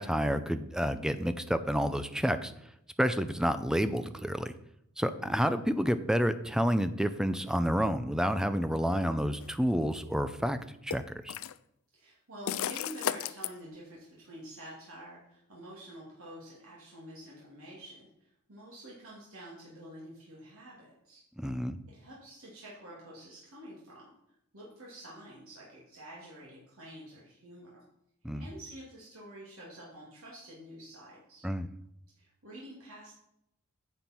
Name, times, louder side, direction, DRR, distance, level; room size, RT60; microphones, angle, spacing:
voice 1, 0.0-2.5 3.0-4.5 5.0-10.6 10.8-11.4 21.4-21.8 28.2-28.5 31.4-31.7, equal, 5° right, 11 dB, 0.5 m, -29 dB
voice 2, 5.1-5.5 11.9-18.1 18.5-21.2 21.9-24.1 24.5-27.8 28.3-31.5 32.2-33.1, right 1 dB, 80° right, -5 dB, 2.7 m, -48 dB
sound 1, 9.4-9.5 10.9-11.6 12.5-13.5, left 9 dB, 70° left, 0.4 m, -34 dB
9.6 x 7.2 x 4.5 m, 0.80 s
head